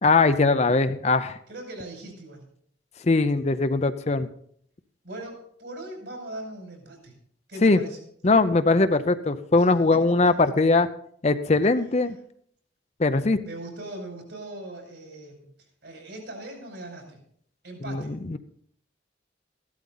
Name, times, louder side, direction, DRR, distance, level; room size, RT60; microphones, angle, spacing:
voice 1, 0.0-1.4 3.0-4.3 7.6-7.8 8.2-10.9 11.2-12.2 13.0-13.4 17.9-18.4, left 3 dB, 35° left, 11 dB, 0.6 m, -21 dB
voice 2, 1.5-2.4 5.0-7.1 7.5-8.0 9.6-10.0 13.4-15.4 15.8-17.2 17.6-18.1, right 1 dB, 70° right, 2 dB, 5.5 m, -40 dB
15.0 x 12.0 x 4.0 m, 0.63 s
head